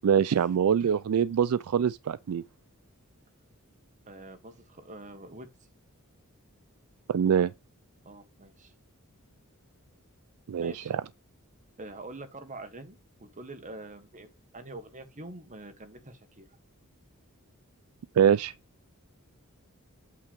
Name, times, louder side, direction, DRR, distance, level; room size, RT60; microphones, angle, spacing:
voice 1, 0.0-2.4 7.1-7.5 10.5-11.0 18.2-18.5, right 8 dB, 75° right, 0.4 m, -24 dB
voice 2, 4.1-5.5 8.0-8.7 10.5-10.9 11.8-16.5, right 2 dB, 35° right, 1.6 m, -45 dB
8.5 x 3.5 x 5.2 m
head